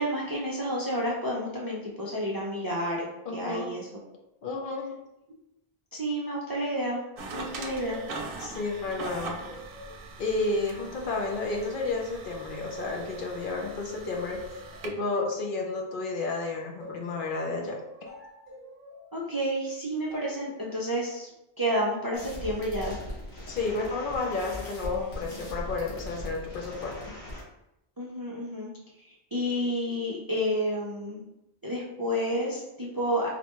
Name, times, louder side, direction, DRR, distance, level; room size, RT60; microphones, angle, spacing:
voice 1, 0.0-3.0 3.3-3.9 5.9-7.0 7.3-8.0 19.1-21.3 21.6-23.0 28.0-28.7 29.1-31.2 31.6-33.3, equal, 30° right, -4 dB, 0.4 m, -30 dB
voice 2, 3.2-3.7 4.4-4.9 8.4-9.4 10.2-14.4 14.8-17.8 23.5-27.1, left 3 dB, 60° left, 0 dB, 0.8 m, -31 dB
sound 1, 7.2-14.9, right 3 dB, 65° right, 0.7 m, -42 dB
sound 2, 7.3-12.3 12.8-17.1 17.6-19.1 20.1-20.5, left 1 dB, 15° right, 0.8 m, -47 dB
sound 3, 22.1-27.4, left 1 dB, 90° left, 1.4 m, -39 dB
4.0 x 2.2 x 2.9 m, 0.86 s
omnidirectional pair, 1.0 m